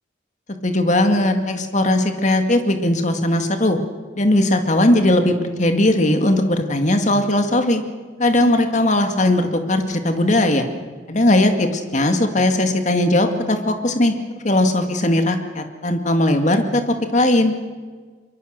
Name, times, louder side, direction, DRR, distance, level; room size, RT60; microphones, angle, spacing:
voice 1, 0.6-3.8 4.1-7.8 8.2-10.7 11.1-14.1 14.4-17.5, left 1 dB, 40° left, 6 dB, 2.1 m, -18 dB
24.0 x 23.0 x 6.6 m, 1.5 s
head